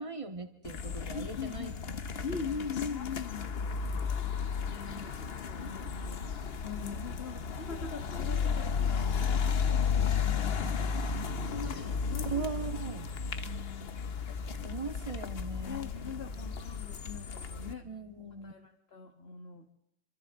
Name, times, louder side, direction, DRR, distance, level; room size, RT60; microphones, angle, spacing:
voice 1, 0.0-1.7 2.1-2.2 4.9-5.2 11.8-11.9 12.2-13.1 14.6-16.2 17.8-18.5, right 4 dB, 15° right, 5 dB, 1.7 m, -40 dB
sound 1, 0.6-17.7, left 6 dB, 70° left, 0.5 m, -34 dB
voice 2, 1.1-1.9 2.2-3.5 4.2-5.1 5.4-12.8 13.4-14.0 15.6-17.9 18.4-19.7, left 6 dB, 30° left, 2 dB, 1.7 m, -42 dB
28.0 x 25.5 x 3.8 m, 0.81 s
omnidirectional pair, 2.4 m